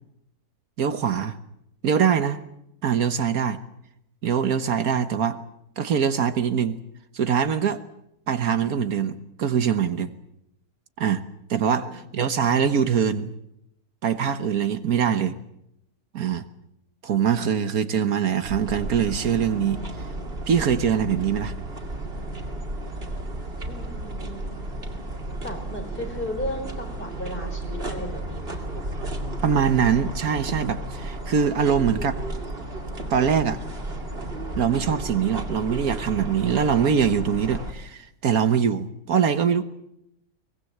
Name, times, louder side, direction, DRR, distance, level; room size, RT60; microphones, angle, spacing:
voice 1, 0.8-1.4 1.8-2.4 2.8-3.6 4.2-5.4 5.8-6.8 7.1-7.8 8.3-10.1 11.0-11.2 11.5-13.3 14.0-15.3 16.1-16.4 17.0-19.8 20.5-21.5 29.4-32.2 33.1-33.6 34.6-39.6, right 7 dB, 70° right, 11 dB, 1.5 m, -23 dB
sound 1, 18.4-37.7, right 1 dB, 40° right, 2.8 m, -33 dB
voice 2, 23.7-24.6 25.4-28.6, left 1 dB, 35° left, 4 dB, 4.8 m, -35 dB
23.5 x 19.5 x 7.9 m, 0.80 s
omnidirectional pair, 1.7 m